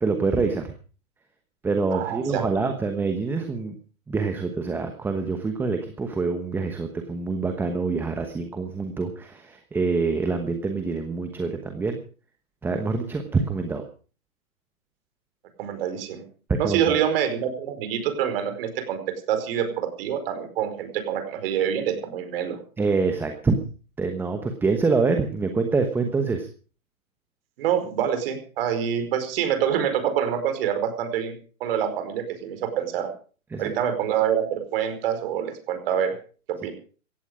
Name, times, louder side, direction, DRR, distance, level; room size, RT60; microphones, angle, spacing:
voice 1, 0.0-0.7 1.6-3.8 4.1-12.0 12.6-13.8 16.5-17.0 22.8-23.6 24.0-26.5 33.5-33.7, right 4 dB, 5° right, 6 dB, 1.1 m, -26 dB
voice 2, 1.9-2.4 15.6-16.2 16.6-22.6 27.6-31.3 31.6-33.1 33.6-36.1 36.5-36.7, right 9 dB, 40° right, 9 dB, 4.8 m, -26 dB
17.5 x 15.0 x 5.0 m, 0.40 s
hypercardioid pair, 140°, 42 cm